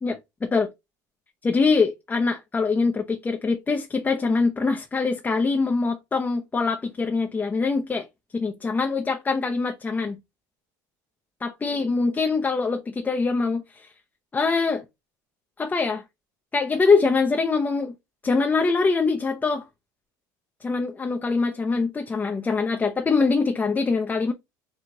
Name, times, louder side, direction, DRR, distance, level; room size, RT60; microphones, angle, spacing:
voice 1, 0.0-0.7 1.4-8.1 8.3-10.2 11.4-13.9 14.3-14.8 15.6-16.0 16.5-17.9 18.2-19.6 20.6-24.3, left 4 dB, 20° left, 0.6 m, -23 dB
4.7 x 2.4 x 3.9 m
supercardioid pair, 110°, 9 cm